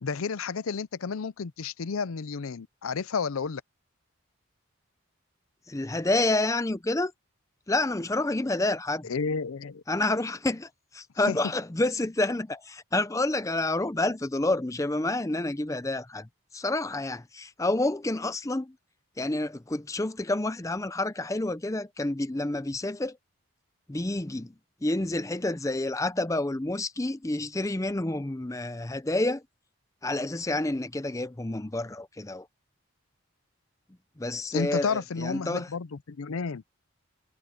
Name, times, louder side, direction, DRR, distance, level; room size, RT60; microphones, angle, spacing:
voice 1, 0.0-3.6 9.1-9.8 11.3-11.4 34.5-36.6, left 5 dB, 75° left, 0.5 m, -31 dB
voice 2, 5.7-7.1 7.7-9.1 9.9-18.8 19.2-23.2 23.9-24.5 24.8-29.4 30.0-32.5 34.2-35.7, left 2 dB, 15° left, 0.5 m, -29 dB
head